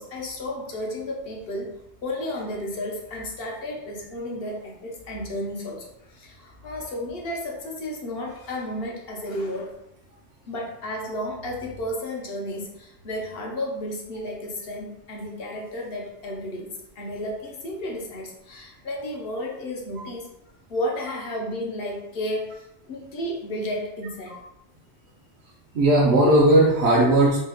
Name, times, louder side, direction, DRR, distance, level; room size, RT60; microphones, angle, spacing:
voice 1, 0.0-1.7 2.0-9.7 10.5-16.7 17.0-20.3 20.7-24.4, left 1 dB, 60° left, -1 dB, 0.8 m, -32 dB
voice 2, 25.7-27.4, right 1 dB, 65° right, -5 dB, 0.8 m, -17 dB
3.0 x 2.2 x 3.4 m, 0.82 s
omnidirectional pair, 1.2 m